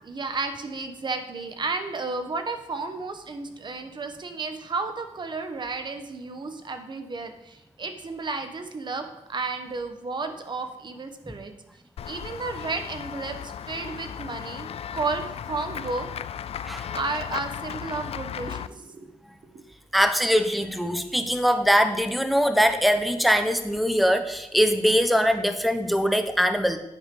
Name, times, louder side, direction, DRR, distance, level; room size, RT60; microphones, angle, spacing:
voice 1, 0.0-11.5 12.1-16.1 16.9-19.1 19.5-19.6, right 3 dB, 40° right, 7 dB, 1.1 m, -32 dB
Run / Walk footsteps / Bell, 12.0-18.7, left 9 dB, 55° left, 0.4 m, -36 dB
voice 2, 19.9-26.8, equal, ahead, 8 dB, 0.8 m, -22 dB
9.8 x 9.1 x 3.8 m, 0.91 s
cardioid pair, 105°, 12 cm